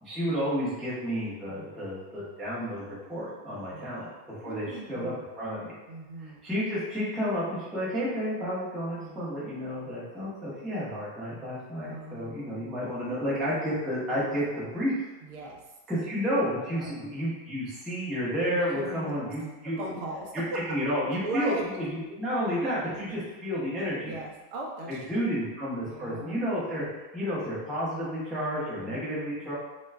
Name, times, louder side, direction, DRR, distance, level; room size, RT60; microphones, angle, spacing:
voice 1, 0.0-5.7 6.2-15.0 15.9-19.8 20.3-24.2 25.1-26.8 27.1-29.5, equal, ahead, -9 dB, 0.4 m, -31 dB
voice 2, 1.5-1.9 3.5-4.1 4.4-5.2 5.9-6.4 8.9-9.2 11.8-12.7 14.1-14.7 15.2-15.6 16.7-16.9 18.4-19.1 19.8-20.8 21.2-21.6 22.9-23.2 23.9-25.3 25.8-26.4 26.8-27.0 28.4-29.0, right 2 dB, 65° right, -1 dB, 0.7 m, -39 dB
3.0 x 2.3 x 3.3 m, 1.1 s
omnidirectional pair, 1.7 m